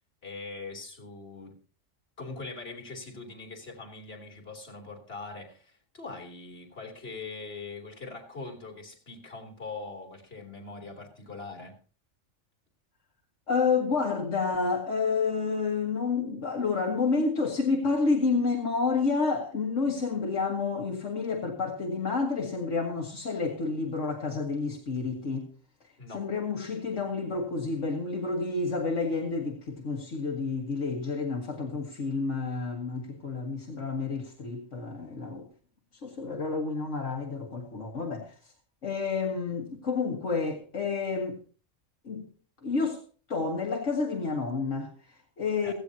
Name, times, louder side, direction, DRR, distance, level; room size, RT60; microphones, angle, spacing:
voice 1, 0.2-1.6 2.2-11.8 26.0-26.3 45.6-45.7, left 3 dB, 50° left, 3.2 m, -42 dB
voice 2, 13.5-25.5 26.1-35.5 36.0-38.4 38.8-41.4 42.0-42.3 42.6-43.0 43.3-45.7, left 4 dB, 75° left, 2.1 m, -29 dB
16.5 x 15.5 x 2.8 m
omnidirectional pair, 1.3 m